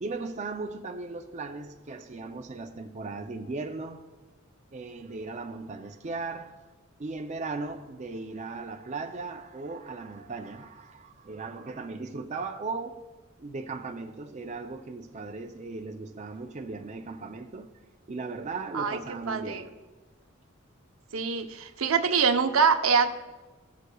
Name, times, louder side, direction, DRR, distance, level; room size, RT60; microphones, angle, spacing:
voice 1, 0.0-4.1 4.7-6.6 7.0-13.1 13.4-17.7 18.1-19.8 21.3-21.6, right 3 dB, 35° right, 0.4 m, -37 dB
voice 2, 19.3-19.6 21.1-23.1, right 6 dB, 85° right, 0.7 m, -24 dB
18.0 x 6.5 x 2.3 m
head